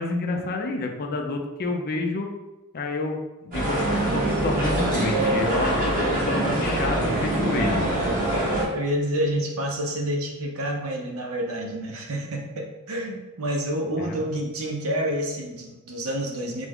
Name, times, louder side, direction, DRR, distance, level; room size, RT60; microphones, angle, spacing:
voice 1, 0.0-2.3 2.7-7.9 14.0-14.3, left 3 dB, 45° left, 3 dB, 0.4 m, -29 dB
sound 1, 3.5-8.7, right 1 dB, 40° right, 1.1 m, -24 dB
voice 2, 8.7-16.7, equal, 70° right, 1 dB, 0.6 m, -28 dB
3.4 x 2.0 x 3.5 m, 1.1 s
head